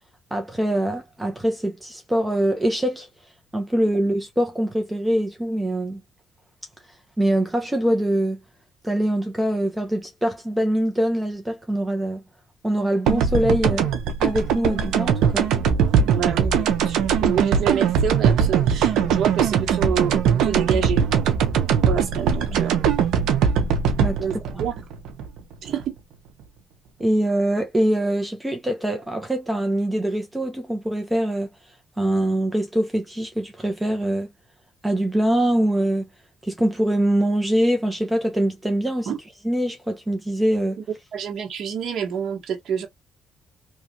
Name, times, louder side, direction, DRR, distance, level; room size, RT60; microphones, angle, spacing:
voice 1, 0.3-3.1 3.5-6.0 7.2-8.4 8.8-12.2 12.6-13.9 14.2-15.5 24.0-24.2 27.0-31.5 32.0-34.3 34.8-36.1 36.4-39.1 39.4-40.8, right 1 dB, 10° right, 0.7 m, -23 dB
sound 1, 13.1-25.9, right 7 dB, 90° right, 0.6 m, -21 dB
voice 2, 16.1-21.1 21.9-22.9 24.2-24.7 25.6-25.9 39.1-39.2 41.1-42.9, right 7 dB, 65° right, 1.1 m, -28 dB
3.1 x 2.4 x 2.8 m
cardioid pair, 90°, 0 cm